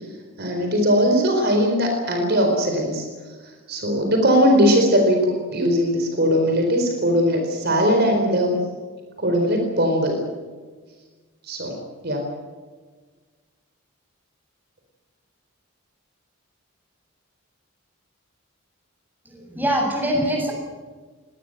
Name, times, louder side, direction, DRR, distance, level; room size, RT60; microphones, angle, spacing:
voice 1, 0.4-3.3 3.7-8.6 9.2-10.2 11.4-11.8 12.0-12.3, equal, 50° right, 3 dB, 4.5 m, -20 dB
voice 2, 19.2-20.5, equal, 10° right, 0 dB, 7.5 m, -23 dB
23.0 x 19.5 x 7.9 m, 1.4 s
head